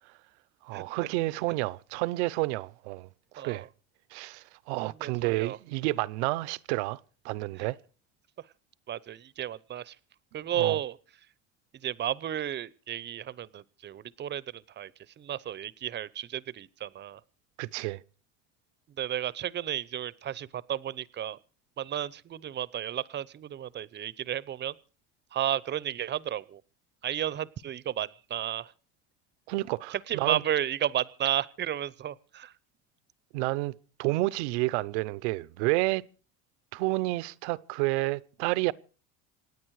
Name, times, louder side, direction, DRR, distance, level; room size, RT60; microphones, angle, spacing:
voice 1, 0.6-3.1 3.3-3.7 4.1-7.0 7.2-7.8 10.5-10.8 17.6-18.0 29.5-30.4 33.3-36.0 36.7-38.7, right 21 dB, 80° right, 0.8 m, -30 dB
voice 2, 3.4-3.7 4.8-5.6 8.9-10.0 10.3-11.0 11.8-14.9 15.2-17.2 19.0-21.4 21.8-24.8 25.3-26.6 27.0-28.7 29.9-32.5, right 11 dB, 30° right, 0.8 m, -33 dB
26.5 x 9.5 x 4.8 m
supercardioid pair, 110°, 33 cm